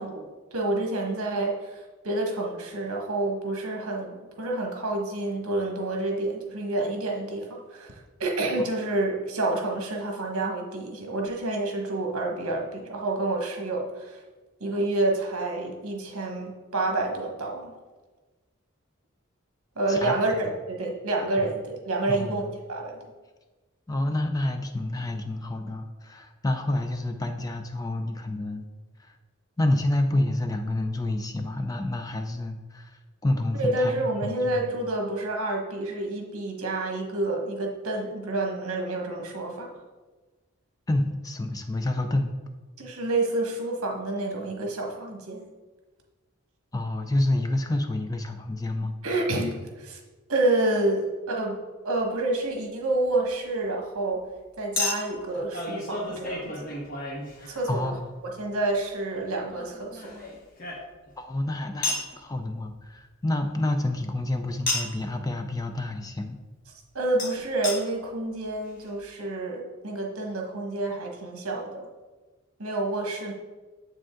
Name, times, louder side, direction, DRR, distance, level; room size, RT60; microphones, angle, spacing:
voice 1, 0.0-14.2 14.6-17.7 19.7-23.0 33.6-39.7 42.8-45.4 49.0-50.0 50.3-51.6 51.8-54.2 54.6-56.8 57.5-57.9 58.4-60.1 66.9-71.9 72.6-73.3, right 2 dB, 75° right, 1 dB, 1.3 m, -28 dB
voice 2, 22.1-22.5 23.9-28.7 29.0-29.1 29.6-34.7 40.9-42.3 46.7-48.9 57.7-58.1 61.2-66.4, left 1 dB, 15° left, 6 dB, 0.3 m, -28 dB
Chink clink, 51.9-52.1 54.8-57.9 59.5-61.2 61.8-62.1 64.7-65.0 67.2-67.3 67.6-67.8 68.4-68.5 68.7-68.8, left 2 dB, 40° left, 1.4 m, -32 dB
7.4 x 5.1 x 3.6 m, 1.3 s
head